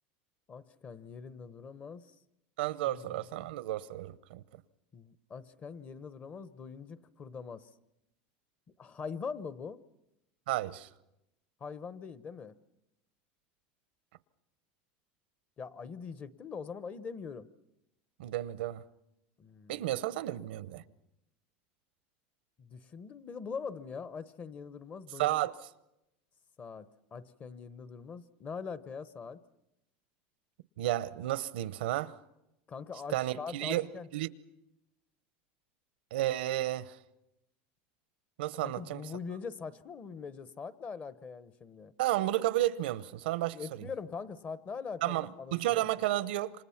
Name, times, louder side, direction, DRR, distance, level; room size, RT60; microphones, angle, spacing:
voice 1, 0.5-2.1 2.9-3.5 4.9-7.7 8.8-9.8 11.6-12.6 15.6-17.5 19.4-19.9 22.6-25.4 26.6-29.4 32.7-34.1 38.6-41.9 43.5-45.7, left 5 dB, 30° left, 0.9 m, -43 dB
voice 2, 2.6-4.4 10.5-10.9 18.2-18.8 19.7-20.8 25.2-25.5 30.8-32.1 33.1-34.3 36.1-37.0 38.4-39.0 42.0-43.9 45.0-46.5, right 15 dB, 90° right, 0.8 m, -32 dB
28.0 x 25.5 x 5.8 m
supercardioid pair, 130°, 5 cm